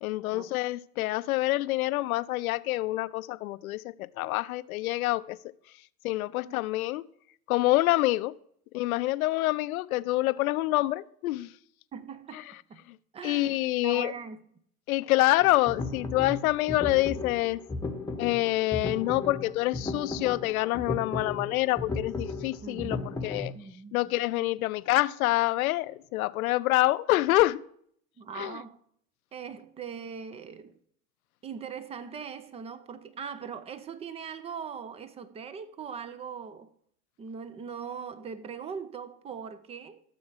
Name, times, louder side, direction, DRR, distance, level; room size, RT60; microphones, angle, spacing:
voice 1, 0.0-5.4 6.0-7.0 7.5-8.3 8.7-11.5 12.3-12.4 12.9-13.0 13.2-14.1 14.9-17.6 18.2-23.5 23.9-27.6 28.4-28.6, left 18 dB, 60° left, 0.6 m, -27 dB
voice 2, 11.9-12.8 13.1-14.4 22.6-23.3 23.5-24.0 28.2-28.8 29.3-30.8 31.4-36.7 37.2-40.0, right 6 dB, 15° right, 0.4 m, -40 dB
sound 1, 15.4-23.5, left 3 dB, 5° left, 0.9 m, -35 dB
13.0 x 7.2 x 4.7 m
figure-of-eight pair, 80°, 49 cm